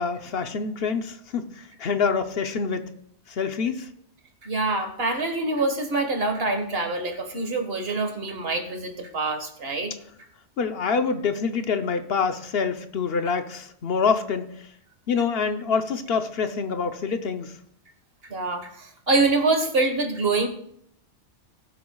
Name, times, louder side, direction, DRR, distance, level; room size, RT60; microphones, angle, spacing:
voice 1, 0.0-2.9 3.3-3.9 10.6-14.7 15.1-17.6, left 5 dB, 60° left, 1.0 m, -26 dB
voice 2, 4.4-9.9 18.3-20.5, right 3 dB, 60° right, 1.7 m, -25 dB
19.5 x 7.9 x 2.3 m
omnidirectional pair, 1.2 m